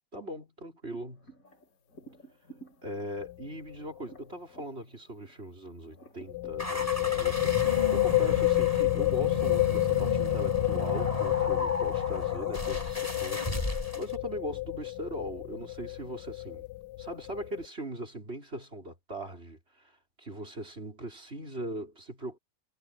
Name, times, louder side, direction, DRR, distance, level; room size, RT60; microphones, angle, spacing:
voice 1, 0.1-1.4 2.8-16.7 17.0-22.4, equal, 35° right, 5.2 m, -40 dB
sound 1, 0.9-5.5 5.9-7.7, right 2 dB, 55° left, 5.1 m, -54 dB
sound 2, 3.2-3.5 3.7-3.8 6.3-17.7, left 19 dB, 85° left, 1.2 m, -29 dB
sound 3, 6.6-14.2, left 1 dB, 20° left, 7.3 m, -35 dB
omnidirectional pair, 1.8 m